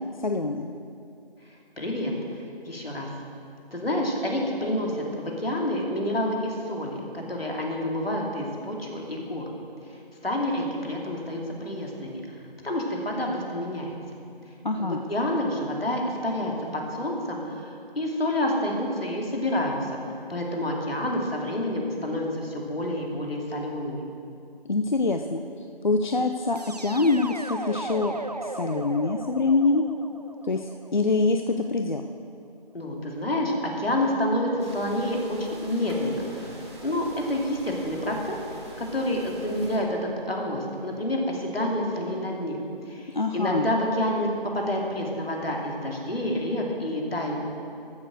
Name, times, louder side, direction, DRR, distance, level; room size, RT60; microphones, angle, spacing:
voice 1, 0.2-0.7 14.6-15.0 24.6-29.9 30.4-32.0 43.1-43.7, left 3 dB, 50° left, 6 dB, 0.5 m, -25 dB
voice 2, 1.8-2.1 2.6-3.1 3.7-9.4 10.2-12.2 12.6-13.9 14.8-20.0 20.3-24.0 32.7-36.6 36.8-42.6 42.9-47.4, left 1 dB, 75° left, -1 dB, 2.8 m, -28 dB
sound 1, 26.6-31.5, right 2 dB, 45° right, 0.4 m, -37 dB
sound 2, 34.6-39.8, right 1 dB, 25° right, 2.0 m, -43 dB
14.0 x 6.9 x 6.6 m, 2.5 s
figure-of-eight pair, 165°, 30 cm